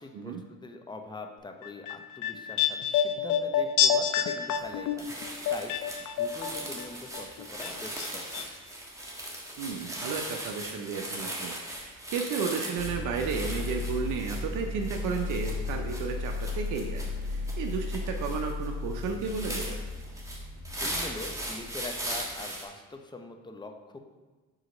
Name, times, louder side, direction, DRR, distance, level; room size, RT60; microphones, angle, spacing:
voice 1, 0.0-5.2 5.5-5.7 6.0-8.5 20.8-24.0, left 2 dB, 15° left, 4 dB, 0.7 m, -43 dB
sound 1, 1.6-6.9 7.1-8.1 8.3-8.4, left 8 dB, 80° left, 0.5 m, -28 dB
sound 2, 4.6-4.7 5.0-22.6, right 1 dB, 10° right, 1.3 m, -39 dB
voice 2, 9.6-19.8, right 5 dB, 85° right, 4 dB, 0.6 m, -33 dB
sound 3, 12.8-22.2, left 3 dB, 60° left, 1.6 m, -35 dB
4.9 x 3.9 x 5.2 m, 1.3 s
cardioid pair, 90°, 30 cm